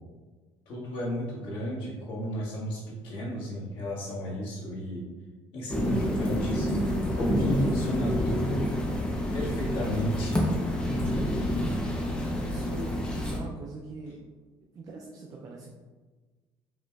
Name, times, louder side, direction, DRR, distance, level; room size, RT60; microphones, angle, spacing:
voice 1, 0.7-5.0 5.5-6.7 7.1-8.7 8.9-10.3, equal, 65° left, -5 dB, 1.4 m, -34 dB
sound 1, 5.7-13.4, left 1 dB, 10° left, 0.6 m, -28 dB
voice 2, 12.4-14.3 14.7-15.7, right 2 dB, 35° right, -1 dB, 0.4 m, -42 dB
5.0 x 2.9 x 2.3 m, 1.3 s
cardioid pair, 150°, 10 cm